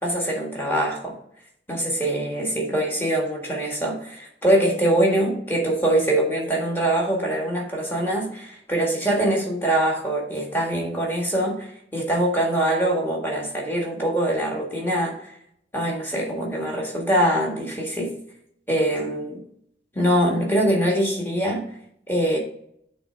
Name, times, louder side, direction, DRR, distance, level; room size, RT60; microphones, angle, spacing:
voice 1, 0.0-1.1 1.7-15.3 15.7-18.1 18.7-19.4 19.9-21.6 22.1-22.4, right 1 dB, 10° left, -2 dB, 1.6 m, -23 dB
8.2 x 3.4 x 4.4 m, 0.71 s
head